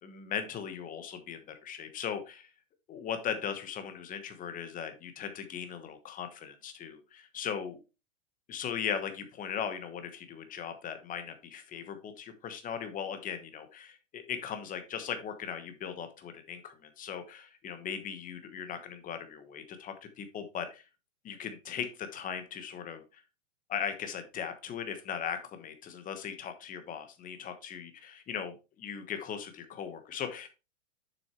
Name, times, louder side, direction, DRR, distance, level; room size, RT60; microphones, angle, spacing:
voice 1, 0.0-2.5 2.9-7.8 8.5-20.8 21.2-23.2 23.7-30.5, left 8 dB, 20° left, 8 dB, 1.2 m, -38 dB
7.3 x 6.1 x 3.1 m, 0.29 s
hypercardioid pair, 125°, 38 cm